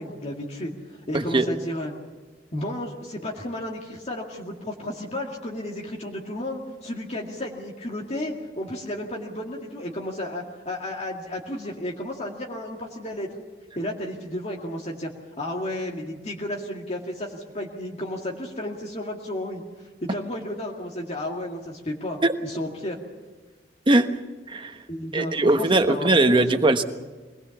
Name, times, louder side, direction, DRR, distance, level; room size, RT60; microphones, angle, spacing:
voice 1, 0.0-1.9 2.5-13.3 13.8-15.1 15.4-23.0 24.9-26.3, left 1 dB, 40° left, -1 dB, 2.2 m, -33 dB
voice 2, 1.1-1.5 22.2-22.3 23.9-24.1 24.5-24.8 25.1-26.8, right 2 dB, 30° right, 7 dB, 1.2 m, -20 dB
23.0 x 19.5 x 7.2 m, 1.3 s
head